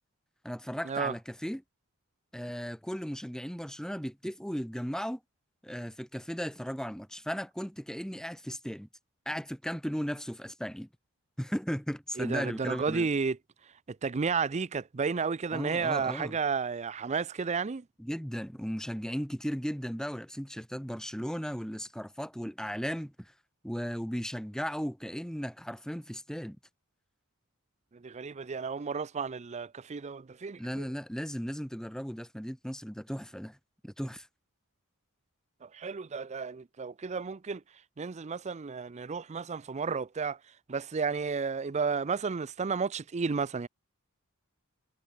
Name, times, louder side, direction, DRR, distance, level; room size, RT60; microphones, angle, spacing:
voice 1, 0.4-1.6 2.3-5.2 5.6-8.9 9.3-10.9 11.4-13.1 15.5-16.4 18.0-23.3 23.6-26.6 30.6-33.6 33.8-34.3, equal, 5° left, 5.6 m, -36 dB
voice 2, 12.2-13.4 13.6-13.7 14.0-17.8 28.0-30.8 35.6-43.7, right 5 dB, 30° right, 0.5 m, -32 dB
head